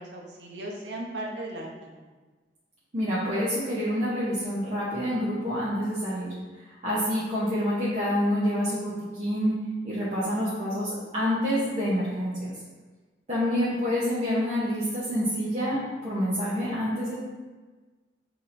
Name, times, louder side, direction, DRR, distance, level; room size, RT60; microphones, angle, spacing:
voice 1, 0.0-2.0 7.6-7.7 13.5-13.8, right 1 dB, 75° right, -2 dB, 0.9 m, -37 dB
voice 2, 2.9-6.3 6.7-9.5 9.8-12.5 13.3-17.1, equal, 40° right, -10 dB, 0.9 m, -27 dB
6.0 x 2.9 x 2.6 m, 1.3 s
head